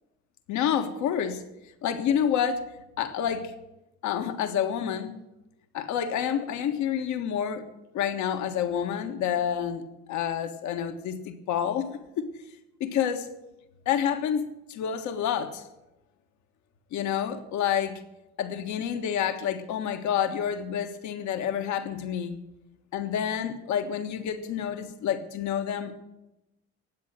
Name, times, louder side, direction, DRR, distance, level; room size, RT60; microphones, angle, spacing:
voice 1, 0.5-1.4 1.8-2.6 3.0-3.5 4.0-5.1 5.7-7.6 7.9-12.3 12.8-13.3 13.8-15.6 16.9-18.0 18.4-22.4 22.9-25.9, left 9 dB, 75° left, 7 dB, 1.6 m, -28 dB
19.0 x 8.0 x 7.5 m, 0.93 s
cardioid pair, 110°, 29 cm